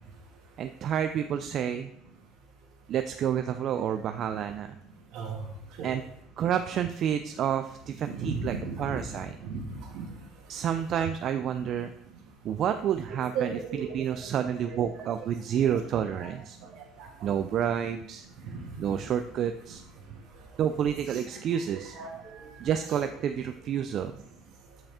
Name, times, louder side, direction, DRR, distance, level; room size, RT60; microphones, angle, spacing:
voice 1, 0.6-1.9 2.9-4.8 5.8-6.0 6.4-9.4 10.5-11.9 12.4-16.6 17.2-18.3 18.8-19.8 20.6-24.1, right 9 dB, 45° right, 8 dB, 0.3 m, -29 dB
voice 2, 8.0-9.0 9.4-10.0 13.3-15.1 16.2-16.3 16.6-17.3 21.1-21.3 21.7-22.1 22.4-22.5 22.9-23.1, right 5 dB, 65° right, -1 dB, 2.0 m, -36 dB
7.1 x 5.2 x 3.6 m, 0.74 s
cardioid pair, 150°, 0 cm